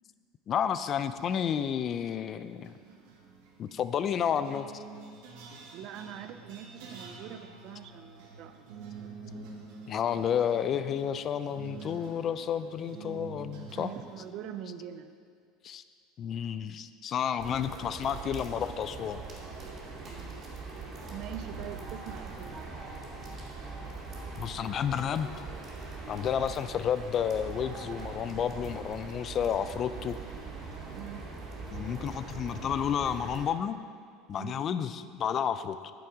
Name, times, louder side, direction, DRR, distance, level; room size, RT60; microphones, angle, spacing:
voice 1, 0.5-2.7 3.6-4.7 9.9-13.9 15.6-15.8 16.2-19.2 24.4-25.5 26.1-30.2 31.7-33.8 34.3-35.9, left 8 dB, 40° left, 12 dB, 0.4 m, -31 dB
sound 1, 1.1-1.7 2.6-14.3, right 4 dB, 75° right, 1.5 m, -47 dB
voice 2, 5.7-8.7 9.0-9.1 13.7-15.1 20.0-20.5 21.1-22.7 30.9-31.2 34.4-34.6, right 10 dB, 55° right, 9 dB, 0.6 m, -43 dB
sound 2, 17.4-33.5, right 4 dB, 35° right, 2.4 m, -42 dB
9.4 x 7.0 x 4.9 m, 2.1 s
supercardioid pair, 115°, 0 cm